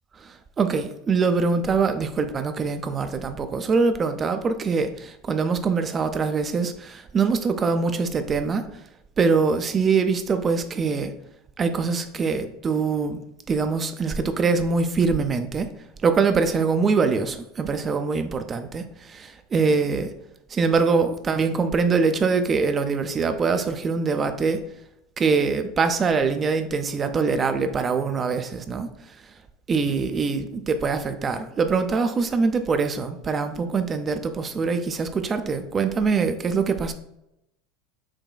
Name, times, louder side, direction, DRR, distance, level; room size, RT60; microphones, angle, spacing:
voice 1, 0.1-8.8 9.2-11.1 11.6-13.2 13.5-15.7 16.0-20.1 20.5-24.6 25.2-29.3 29.7-36.9, right 4 dB, 30° right, 8 dB, 0.3 m, -23 dB
5.9 x 2.2 x 2.2 m, 0.83 s
hypercardioid pair, 80°, 0 cm